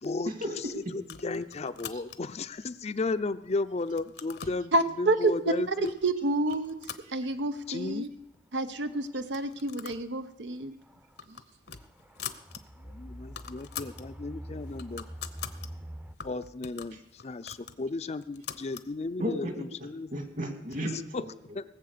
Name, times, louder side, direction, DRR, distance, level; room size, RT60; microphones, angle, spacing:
voice 1, 0.3-0.7 1.9-2.0 7.0-7.3 16.9-17.0 19.2-21.6, equal, 50° right, 6 dB, 2.1 m, -35 dB
voice 2, 0.9-5.9 7.7-8.1 12.8-15.1 16.2-20.1 21.6-21.7, left 3 dB, 40° left, 12 dB, 0.5 m, -34 dB
sound 1, 1.0-2.4 3.0-3.5 3.8-4.6 5.4-5.5 5.9-6.1 6.5-7.7 8.0-8.1 8.3-8.4 9.2-10.1 10.4-10.6 11.0-12.6 12.9-13.0 13.2-14.1 14.5-15.7 16.2-18.9, left 8 dB, 65° left, 0.8 m, -43 dB
voice 3, 4.7-6.7 7.1-8.1 8.5-10.7, right 2 dB, 90° right, 9 dB, 0.8 m, -29 dB
sound 2, 6.8-6.9 7.6-7.9 8.9-9.1 10.9-11.2 11.7-16.2, right 1 dB, 10° right, 0.6 m, -45 dB
19.0 x 7.7 x 6.7 m, 0.80 s
head